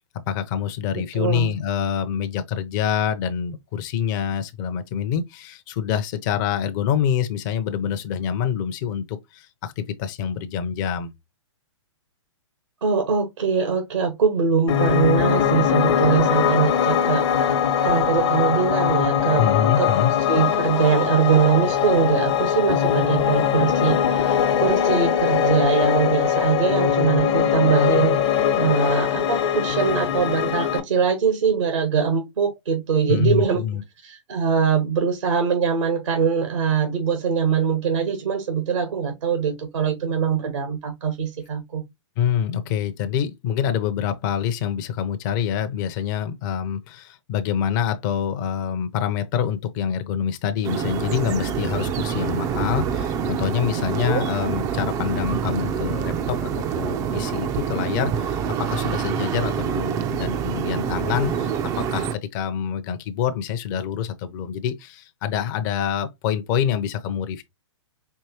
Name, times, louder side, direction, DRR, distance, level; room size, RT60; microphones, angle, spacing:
voice 1, 0.3-11.1 19.4-20.1 33.1-33.8 42.2-56.5 56.8-67.4, left 8 dB, 40° left, 0.7 m, -26 dB
voice 2, 1.1-1.5 12.8-19.5 19.8-19.9 20.3-28.2 28.6-33.6 34.0-41.8 53.8-54.2, right 6 dB, 75° right, 1.3 m, -22 dB
Piano, 14.7-30.8, left 8 dB, 60° left, 1.0 m, -21 dB
sound 1, 50.6-62.1, right 7 dB, 20° right, 0.4 m, -26 dB
4.6 x 3.0 x 2.8 m
hypercardioid pair, 130°, 16 cm